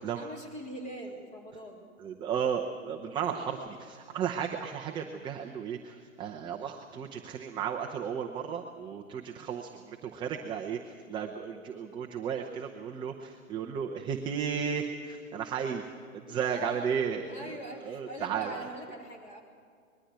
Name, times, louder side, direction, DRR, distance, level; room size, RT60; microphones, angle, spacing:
voice 1, 0.1-1.8 3.2-3.4 16.2-19.4, right 1 dB, 15° left, 3 dB, 3.5 m, -43 dB
voice 2, 2.0-15.8 16.1-18.7, right 7 dB, 10° right, 2 dB, 0.8 m, -34 dB
21.0 x 14.0 x 9.6 m, 2.2 s
hypercardioid pair, 140°, 42 cm